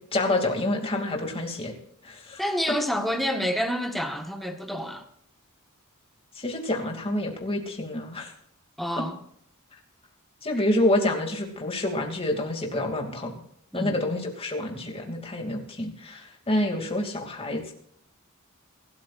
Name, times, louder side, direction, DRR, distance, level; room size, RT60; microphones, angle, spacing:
voice 1, 0.1-1.8 2.0-2.4 6.3-8.3 10.4-13.4 13.7-17.7, left 1 dB, 25° left, 2 dB, 2.7 m, -28 dB
voice 2, 2.4-5.0 8.8-9.2 13.7-14.0, equal, ahead, 4 dB, 1.5 m, -28 dB
24.5 x 13.0 x 2.6 m, 0.66 s
head